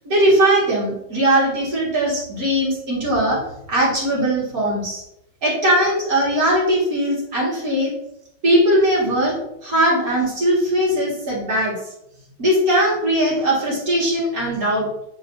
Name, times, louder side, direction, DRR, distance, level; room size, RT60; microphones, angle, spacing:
voice 1, 0.0-3.4 3.7-5.0 5.4-7.9 8.4-9.4 9.6-11.8 12.4-15.1, right 1 dB, 50° right, -5 dB, 2.6 m, -19 dB
8.8 x 4.4 x 2.7 m, 0.82 s
omnidirectional pair, 1.9 m